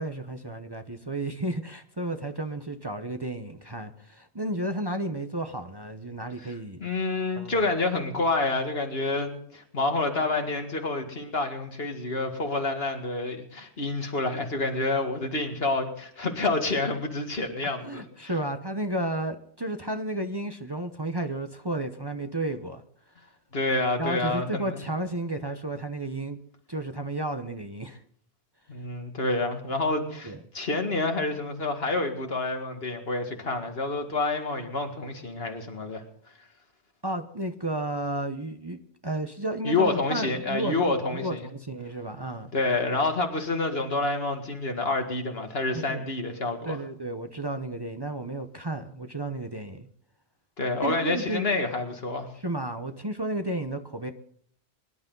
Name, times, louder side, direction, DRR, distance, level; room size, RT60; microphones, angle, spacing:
voice 1, 0.0-6.9 7.4-7.6 17.8-22.8 24.0-26.4 26.7-28.0 30.2-30.4 37.0-42.5 45.7-46.0 46.6-49.9 50.8-51.5 52.4-54.1, right 1 dB, 25° right, 7 dB, 0.9 m, -32 dB
voice 2, 6.8-18.3 23.5-24.8 28.7-36.0 39.6-41.5 42.5-46.8 50.6-52.3, left 3 dB, 65° left, 4 dB, 2.2 m, -28 dB
23.0 x 11.5 x 3.9 m, 0.63 s
omnidirectional pair, 1.1 m